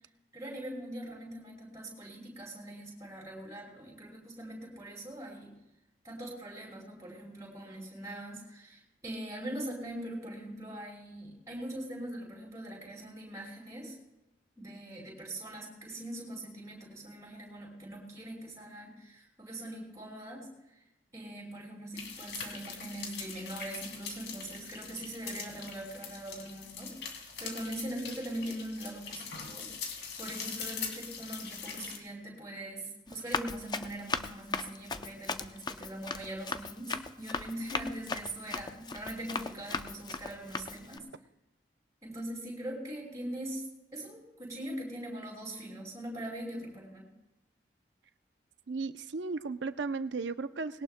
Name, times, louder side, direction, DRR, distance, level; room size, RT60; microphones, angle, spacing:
voice 1, 0.3-5.5 6.0-14.0 14.6-20.5 21.1-29.9 30.2-41.0 42.0-43.7 43.9-47.1, right 1 dB, 15° right, -3 dB, 5.3 m, -42 dB
sound 1, 22.0-32.0, left 6 dB, 80° left, 2.4 m, -42 dB
Run, 33.1-41.0, left 4 dB, 25° left, 0.5 m, -38 dB
voice 2, 48.7-50.8, right 4 dB, 85° right, 12 dB, 0.6 m, -35 dB
20.5 x 18.5 x 2.2 m, 0.92 s
head